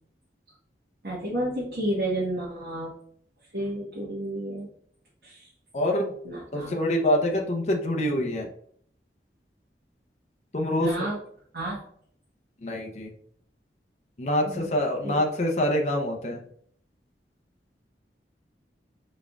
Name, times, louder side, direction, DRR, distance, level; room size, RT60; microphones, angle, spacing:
voice 1, 1.0-3.0 3.5-4.7 5.2-5.5 6.2-6.8 10.8-11.2 11.5-11.8 14.5-14.7 15.0-15.2, right 1 dB, 70° right, -6 dB, 1.2 m, -31 dB
voice 2, 5.7-6.1 6.5-8.5 10.5-10.9 12.6-13.1 14.2-16.4, left 1 dB, 40° left, 1 dB, 0.6 m, -25 dB
4.1 x 3.6 x 2.3 m, 0.62 s
head